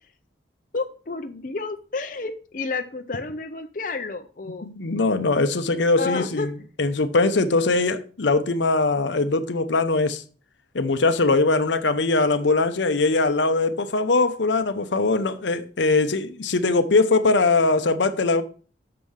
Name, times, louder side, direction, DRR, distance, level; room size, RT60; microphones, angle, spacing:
voice 1, 0.7-4.7 6.0-6.5, left 3 dB, 45° left, 0.7 m, -30 dB
voice 2, 4.6-6.5 6.8-10.2 10.7-18.4, left 3 dB, 80° left, 0.8 m, -21 dB
6.7 x 5.5 x 6.3 m
head